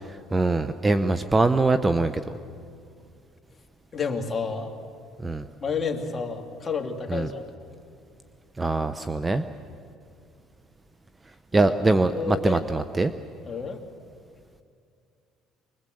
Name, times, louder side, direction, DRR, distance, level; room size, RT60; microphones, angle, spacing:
voice 1, 0.1-2.4 5.2-5.5 7.1-7.3 8.6-9.4 11.5-13.1, right 2 dB, 15° right, 11 dB, 0.8 m, -23 dB
voice 2, 3.9-4.7 5.6-7.4 11.5-12.6 13.5-13.8, left 5 dB, 30° left, 3 dB, 2.6 m, -30 dB
25.0 x 21.5 x 7.8 m, 2.3 s
cardioid pair, 105°, 0 cm